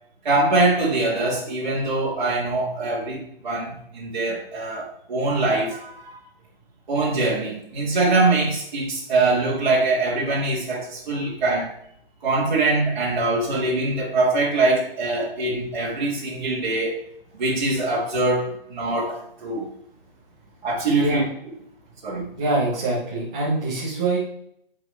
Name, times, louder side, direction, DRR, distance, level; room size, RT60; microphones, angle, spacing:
voice 1, 0.2-6.2 6.9-11.7 12.2-17.0 17.3-19.7 20.6-21.5 22.0-22.3, right 2 dB, 50° right, -5 dB, 2.1 m, -23 dB
voice 2, 22.4-24.2, right 2 dB, 5° right, -8 dB, 0.6 m, -24 dB
9.6 x 4.1 x 3.3 m, 0.71 s
hypercardioid pair, 175°, 30 cm